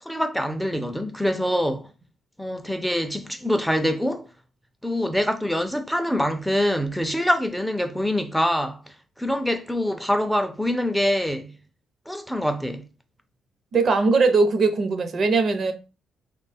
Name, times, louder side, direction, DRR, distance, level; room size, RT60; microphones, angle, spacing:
voice 1, 0.0-1.9 2.4-4.3 4.8-11.6 12.1-12.9, equal, ahead, 0.4 m, -25 dB
voice 2, 13.7-15.7, right 4 dB, 50° right, 0.6 m, -20 dB
3.0 x 2.2 x 4.1 m
cardioid pair, 90°, 0 cm